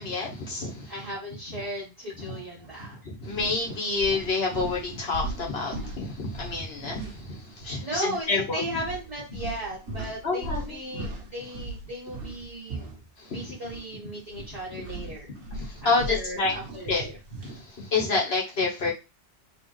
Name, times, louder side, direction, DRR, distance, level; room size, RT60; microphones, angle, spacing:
voice 1, 0.0-0.9 2.2-2.4 3.0-8.6 10.2-11.0 13.3-13.5 14.7-14.8 15.5-16.5 16.9-18.9, left 3 dB, 60° left, -2 dB, 1.6 m, -29 dB
voice 2, 0.9-3.0 7.8-12.9 13.3-15.3 15.8-17.2, equal, 30° right, -7 dB, 1.5 m, -36 dB
sound 1, 2.6-2.8 3.3-7.8 8.0-8.2 8.8-13.9 14.2-17.6, right 2 dB, 75° right, 1.5 m, -39 dB
4.1 x 3.4 x 3.2 m, 0.27 s
omnidirectional pair, 1.2 m